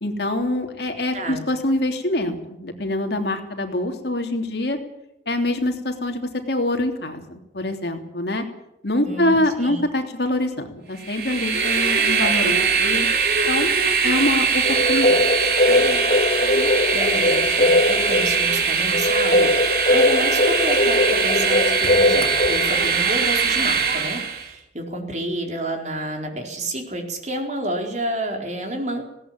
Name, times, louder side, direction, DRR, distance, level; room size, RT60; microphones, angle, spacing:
voice 1, 0.0-4.8 5.3-8.4 8.8-13.1 13.5-13.7 14.0-15.2 15.7-16.1 16.4-16.7, left 1 dB, 60° left, 4 dB, 3.2 m, -25 dB
voice 2, 1.0-1.4 9.0-9.8 16.9-29.0, right 1 dB, 40° right, 3 dB, 4.4 m, -30 dB
Train, 11.0-24.5, right 5 dB, 55° right, 3.2 m, -21 dB
sound 1, 14.6-23.0, left 2 dB, 45° left, 2.1 m, -20 dB
19.5 x 17.5 x 8.8 m, 0.86 s
head